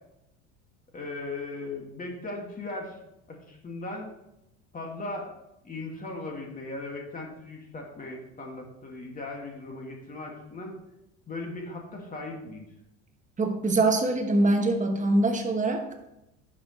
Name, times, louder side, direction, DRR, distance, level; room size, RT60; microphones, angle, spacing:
voice 1, 0.9-3.0 3.3-4.1 4.7-5.3 5.6-10.8 11.3-12.6, left 2 dB, 25° left, 1 dB, 2.2 m, -38 dB
voice 2, 13.4-15.9, right 2 dB, 20° right, 4 dB, 1.2 m, -23 dB
10.0 x 6.5 x 3.2 m, 0.87 s
supercardioid pair, 110°, 36 cm